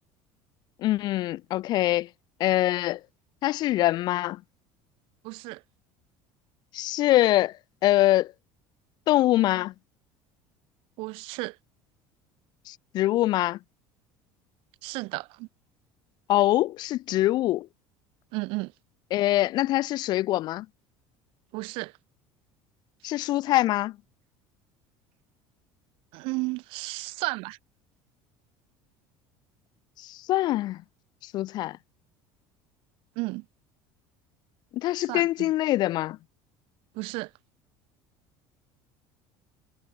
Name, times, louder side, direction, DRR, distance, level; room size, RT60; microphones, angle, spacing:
voice 1, 0.8-2.1 2.4-3.0 3.4-4.4 6.7-7.5 7.8-8.3 9.1-9.7 12.7-13.6 16.3-17.7 19.1-20.6 23.0-23.9 30.1-30.8 31.3-31.8 34.7-36.2, left 15 dB, 45° left, 1.4 m, -24 dB
voice 2, 5.2-5.6 11.0-11.6 14.8-15.5 18.3-18.7 21.5-21.9 26.1-27.6 33.1-33.4 35.1-35.5 36.9-37.3, right 25 dB, 65° right, 5.0 m, -33 dB
cardioid pair, 165°, 10 cm